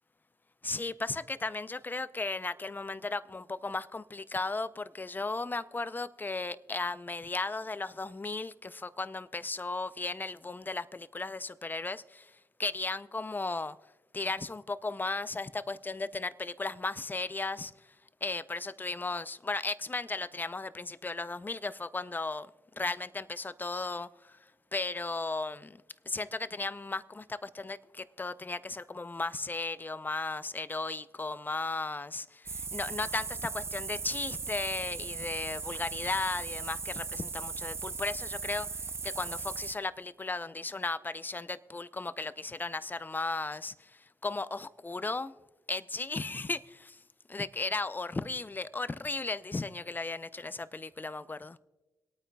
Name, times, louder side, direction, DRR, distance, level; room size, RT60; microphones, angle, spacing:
voice 1, 0.6-12.3 12.6-13.8 14.1-17.7 18.2-22.5 22.8-24.4 24.7-45.4 45.7-46.9 47.3-51.6, left 3 dB, 25° left, 0.5 m, -35 dB
sound 1, 32.5-39.7, right 4 dB, 35° right, 0.4 m, -38 dB
26.0 x 8.9 x 2.3 m
supercardioid pair, 45°, 8 cm